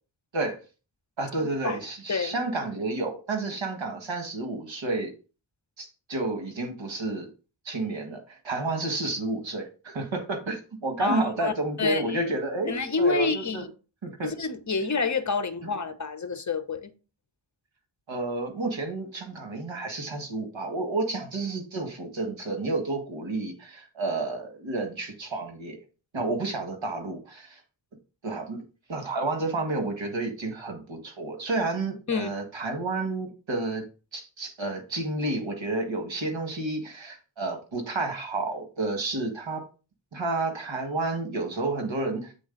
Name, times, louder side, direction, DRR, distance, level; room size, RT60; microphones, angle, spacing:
voice 1, 1.2-5.1 5.8-7.3 7.7-13.6 14.0-14.4 18.1-25.8 26.1-27.6 28.2-28.6 28.9-33.8 34.1-39.6 40.1-42.3, right 2 dB, 75° right, 1.7 m, -30 dB
voice 2, 11.0-11.5 11.8-12.3 12.7-13.7 14.2-16.9 32.1-32.3, left 4 dB, 40° left, 0.8 m, -28 dB
7.7 x 3.8 x 3.9 m
wide cardioid pair, 70°, 46 cm